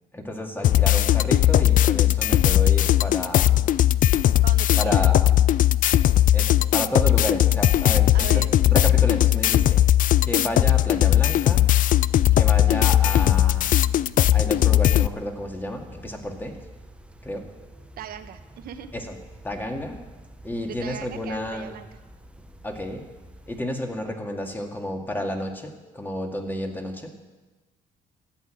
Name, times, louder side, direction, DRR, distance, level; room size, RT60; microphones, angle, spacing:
voice 1, 0.1-3.7 4.8-5.4 6.3-9.6 10.2-11.7 12.4-13.7 14.3-16.6 17.2-17.5 18.9-19.2 19.4-20.0 20.4-21.8 22.6-23.0 23.5-27.1, equal, 10° left, 3 dB, 2.1 m, -31 dB
sound 1, 0.6-15.1, left 12 dB, 50° left, 0.4 m, -18 dB
voice 2, 4.4-5.0 8.1-8.5 9.3-9.6 18.0-18.9 20.6-21.9, right 9 dB, 60° right, 9 dB, 1.1 m, -38 dB
sound 2, 10.0-23.6, right 1 dB, 5° right, 1.0 m, -46 dB
14.5 x 8.4 x 9.0 m, 1.2 s
cardioid pair, 110°, 17 cm